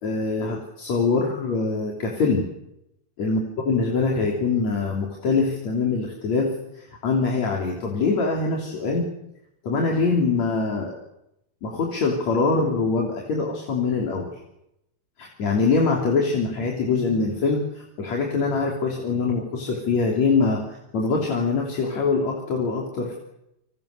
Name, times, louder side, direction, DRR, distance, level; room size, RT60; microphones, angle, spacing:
voice 1, 0.0-2.4 3.2-9.1 9.6-11.0 11.6-14.3 15.2-20.6 20.9-23.2, left 4 dB, 70° left, 0 dB, 4.7 m, -23 dB
27.0 x 25.5 x 6.9 m, 0.84 s
omnidirectional pair, 3.3 m